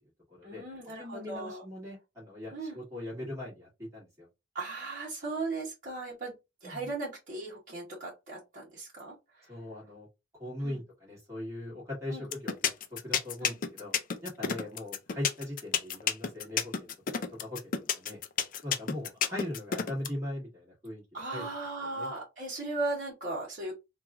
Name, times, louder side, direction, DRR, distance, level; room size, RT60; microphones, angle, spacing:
voice 1, 0.4-1.6 2.5-2.8 4.5-6.3 6.6-9.5 10.6-10.7 12.1-12.2 13.4-13.6 14.4-14.5 21.1-23.7, right 3 dB, 45° right, -6 dB, 1.0 m, -37 dB
voice 2, 1.0-4.3 6.6-6.9 9.5-10.1 10.4-12.7 13.0-13.9 14.2-18.2 18.6-21.5 21.8-22.1, left 1 dB, 15° right, -5 dB, 1.5 m, -40 dB
sound 1, 12.3-20.1, left 7 dB, 45° left, 0.4 m, -29 dB
3.0 x 2.3 x 3.5 m, 0.25 s
head